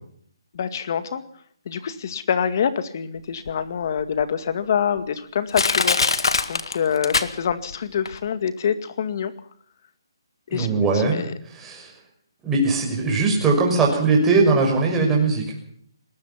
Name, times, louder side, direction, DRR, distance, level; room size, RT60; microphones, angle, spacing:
voice 1, 0.5-1.2 1.7-9.3 10.5-11.3, left 7 dB, 45° left, 11 dB, 2.2 m, -26 dB
Crushing, 3.5-3.6 4.2-4.3 5.0-5.1 5.5-7.7 8.1-8.2, left 4 dB, 75° left, 1.9 m, -22 dB
voice 2, 10.5-11.2 11.4-11.9 12.4-15.4, right 3 dB, 10° right, -1 dB, 6.0 m, -20 dB
22.5 x 20.5 x 6.0 m, 0.63 s
hypercardioid pair, 160°, 3 cm